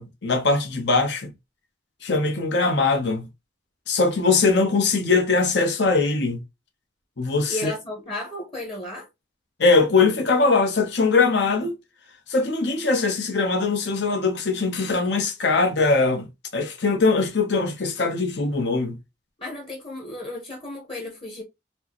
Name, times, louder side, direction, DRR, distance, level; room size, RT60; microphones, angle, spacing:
voice 1, 0.0-1.3 2.0-3.3 3.9-6.4 7.2-7.7 9.6-11.8 12.3-19.0, left 3 dB, 75° left, 0.8 m, -21 dB
voice 2, 7.5-9.1 19.4-21.4, left 1 dB, 30° left, 0.9 m, -34 dB
4.4 x 2.1 x 2.9 m
head